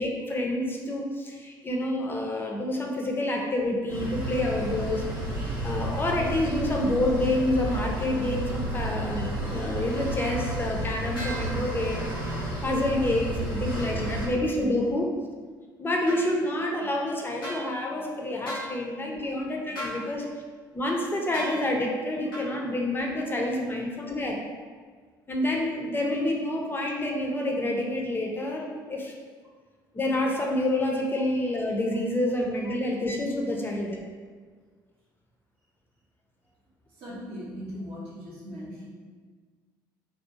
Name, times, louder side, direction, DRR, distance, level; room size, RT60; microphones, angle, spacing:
voice 1, 0.0-5.0 5.6-15.1 15.8-20.3 20.7-24.4 25.3-29.1 29.9-34.0, left 1 dB, 20° left, 0 dB, 0.5 m, -28 dB
sound 1, 3.9-14.3, right 1 dB, 90° right, 0.6 m, -31 dB
sound 2, 11.1-11.4 16.1-16.2 17.4-17.6 18.4-18.7 19.7-20.0 21.3-21.5 22.3-22.5, equal, 85° left, 0.8 m, -35 dB
voice 2, 36.9-38.9, equal, 55° right, -7 dB, 0.7 m, -40 dB
2.5 x 2.3 x 2.7 m, 1.5 s
figure-of-eight pair, 50°, 11 cm